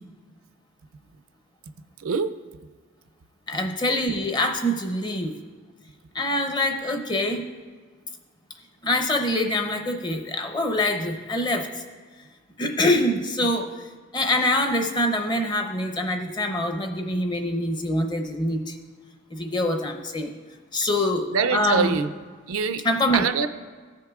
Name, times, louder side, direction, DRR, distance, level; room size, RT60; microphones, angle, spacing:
voice 1, 2.0-2.3 13.4-13.5 21.3-22.1 22.5-22.8 23.1-23.5, right 5 dB, 80° right, 11 dB, 0.4 m, -24 dB
voice 2, 3.5-5.3 6.1-7.5 8.8-11.8 12.6-13.7 14.1-18.8 19.3-20.3 20.7-22.0 22.8-23.2, left 1 dB, 20° left, 4 dB, 0.7 m, -25 dB
15.0 x 6.5 x 2.4 m, 1.5 s
head